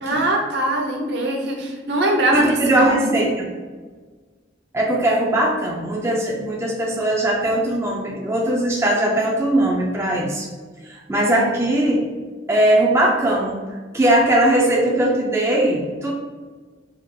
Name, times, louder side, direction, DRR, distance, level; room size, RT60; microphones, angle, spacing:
voice 1, 0.0-3.1, right 1 dB, 65° right, 1 dB, 0.6 m, -22 dB
voice 2, 2.3-3.5 4.7-10.5 10.9-12.0 12.5-13.6 13.9-16.1, right 1 dB, 15° right, -2 dB, 0.3 m, -19 dB
3.4 x 2.3 x 3.5 m, 1.4 s
head